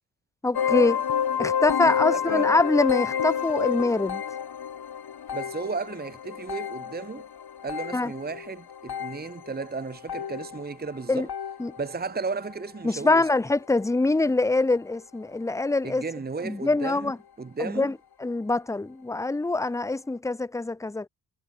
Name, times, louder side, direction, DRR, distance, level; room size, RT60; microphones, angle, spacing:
voice 1, 0.4-1.0 1.4-4.2 7.9-8.1 11.1-11.3 11.6-11.7 12.8-16.0 16.4-17.2 17.6-17.9 18.2-21.1, left 2 dB, 5° left, 0.6 m, -24 dB
sound 1, 0.5-12.0 12.3-12.7 13.3-13.6 13.8-13.9 14.5-14.6, left 8 dB, 55° left, 3.4 m, -30 dB
voice 2, 1.8-2.5 5.3-7.3 7.6-11.3 11.8-13.3 15.8-17.1 17.4-17.9, right 4 dB, 20° right, 1.2 m, -34 dB
wide cardioid pair, 175°, 45 cm